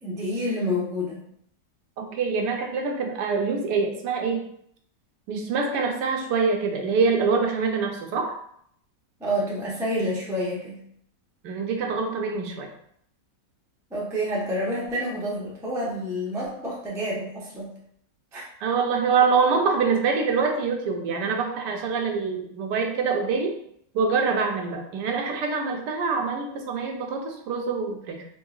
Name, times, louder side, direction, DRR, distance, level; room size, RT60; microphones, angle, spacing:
voice 1, 0.0-1.2 9.2-10.8 13.9-17.7 18.3-18.4, equal, 5° right, -5 dB, 0.3 m, -28 dB
voice 2, 2.0-4.5 5.3-8.3 11.4-12.7 18.6-23.5 23.9-28.2, right 5 dB, 85° right, 3 dB, 1.2 m, -25 dB
3.7 x 2.9 x 2.4 m, 0.68 s
omnidirectional pair, 1.8 m